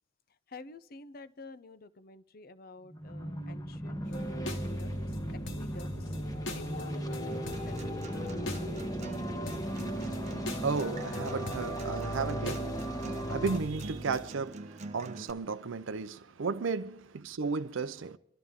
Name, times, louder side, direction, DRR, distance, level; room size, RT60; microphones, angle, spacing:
voice 1, 0.5-6.1 6.5-8.3, left 3 dB, 50° left, 0.6 m, -50 dB
sound 1, 2.9-13.6, equal, 20° left, 1.1 m, -37 dB
sound 2, 4.0-14.3, equal, 70° left, 1.9 m, -40 dB
Acoustic guitar, 7.3-15.3, right 2 dB, 35° right, 0.7 m, -46 dB
voice 2, 9.5-18.2, right 4 dB, 80° right, 0.5 m, -35 dB
28.0 x 12.5 x 3.6 m
head